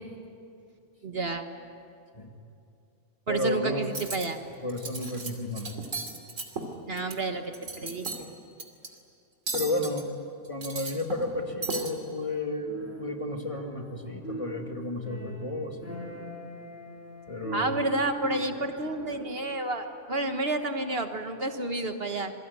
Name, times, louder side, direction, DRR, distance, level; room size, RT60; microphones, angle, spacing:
voice 1, 1.0-1.5 3.3-4.4 6.9-8.3 17.5-22.3, right 2 dB, 50° right, 6 dB, 1.7 m, -30 dB
voice 2, 3.3-3.9 4.6-6.0 9.5-10.1 10.5-15.9 17.3-17.8, left 2 dB, 25° left, 3 dB, 2.3 m, -32 dB
Cutlery silverware, 3.8-4.3 4.7-5.3 5.6-7.2 7.5-8.2 8.6-8.9 9.5-10.0 10.5-11.3 11.6-11.9, right 3 dB, 85° right, 3.2 m, -35 dB
sound 1, 12.6-14.0 14.2-19.5, equal, 10° right, 4.9 m, -41 dB
27.5 x 22.5 x 9.6 m, 2.6 s
omnidirectional pair, 1.3 m